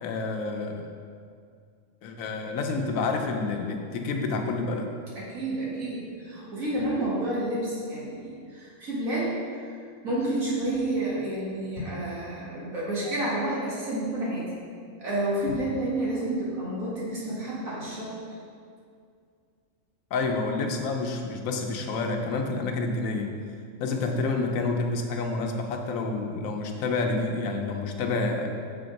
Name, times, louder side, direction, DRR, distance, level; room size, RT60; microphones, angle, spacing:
voice 1, 0.0-0.8 2.0-4.9 20.1-23.3 23.8-28.5, left 3 dB, 80° left, 3 dB, 1.1 m, -28 dB
voice 2, 5.2-9.7 10.0-14.4 15.0-18.1, right 1 dB, 85° right, -7 dB, 2.2 m, -30 dB
6.8 x 3.5 x 5.1 m, 2.2 s
omnidirectional pair, 1.4 m